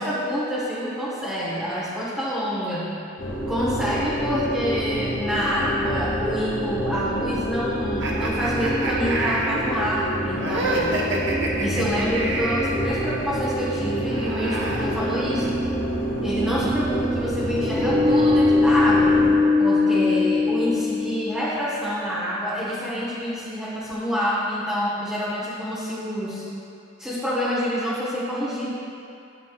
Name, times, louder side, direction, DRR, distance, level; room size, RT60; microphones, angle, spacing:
voice 1, 0.0-2.9 3.5-11.0 11.6-15.6 16.2-19.2 19.6-26.5 27.0-28.7, equal, 5° right, -9 dB, 1.0 m, -27 dB
sound 1, 3.2-19.3, equal, 70° left, 1.6 m, -28 dB
sound 2, 8.0-12.7 13.9-15.6, right 2 dB, 65° right, 0.9 m, -28 dB
sound 3, 14.8-21.6, left 3 dB, 35° right, 0.3 m, -22 dB
10.5 x 7.6 x 2.3 m, 2.7 s
head